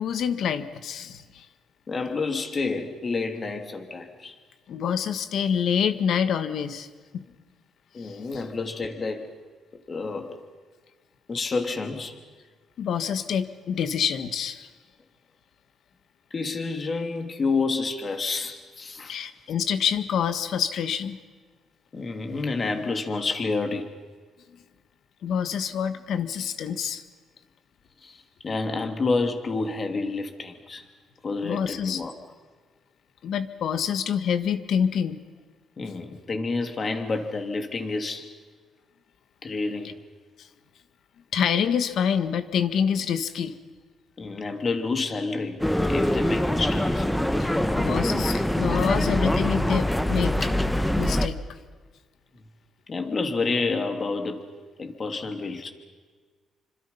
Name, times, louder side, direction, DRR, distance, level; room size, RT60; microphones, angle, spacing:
voice 1, 0.0-1.5 4.7-6.9 7.1-7.2 8.0-8.2 12.8-14.7 19.1-21.2 25.2-27.0 31.4-32.0 33.2-35.2 40.4-40.5 41.3-43.5 47.4-50.5 51.0-51.4, left 7 dB, 70° left, 11 dB, 1.6 m, -27 dB
voice 2, 1.9-4.4 7.9-9.3 9.7-10.4 11.3-12.2 16.3-19.3 21.9-23.9 28.0-30.8 31.2-32.1 35.8-38.3 39.4-40.0 44.2-45.6 45.9-47.1 52.9-54.5 54.8-55.7, left 3 dB, 40° left, 6 dB, 2.9 m, -29 dB
sound 1, 45.6-51.3, left 1 dB, 5° left, 1.3 m, -24 dB
27.5 x 25.5 x 5.7 m, 1.5 s
cardioid pair, 90°, 0 cm